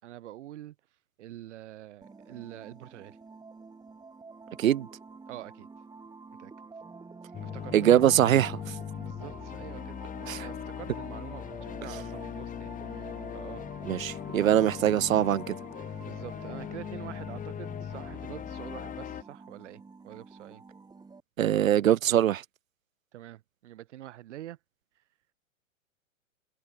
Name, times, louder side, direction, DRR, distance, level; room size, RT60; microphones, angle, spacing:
voice 1, 0.0-0.8 1.2-3.2 5.3-5.7 6.4-6.5 7.4-7.9 9.0-13.7 14.0-14.5 16.0-20.6 23.1-24.6, right 13 dB, 60° right, 7.5 m, -46 dB
sound 1, 2.0-21.2, right 4 dB, 10° right, 3.8 m, -48 dB
sound 2, 7.3-19.2, left 9 dB, 20° left, 2.8 m, -39 dB
voice 2, 7.7-8.8 10.3-10.5 13.8-15.5 21.4-22.4, right 11 dB, 80° right, 0.6 m, -23 dB
hypercardioid pair, 115°, 40 cm